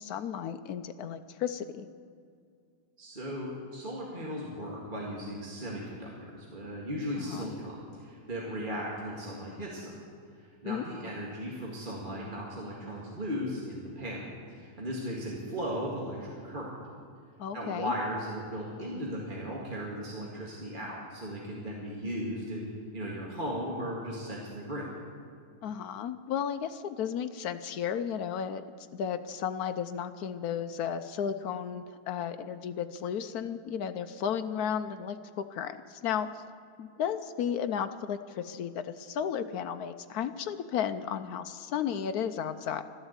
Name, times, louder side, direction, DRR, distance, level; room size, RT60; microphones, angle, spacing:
voice 1, 0.0-1.9 7.2-7.5 10.7-10.8 17.4-17.9 25.6-28.6 28.9-36.4 36.8-42.8, left 8 dB, 70° left, 10 dB, 0.9 m, -34 dB
voice 2, 3.0-9.9 10.4-16.7 17.5-22.6 22.9-24.9, equal, 25° right, -4 dB, 2.0 m, -37 dB
13.0 x 12.0 x 8.0 m, 2.3 s
omnidirectional pair, 2.1 m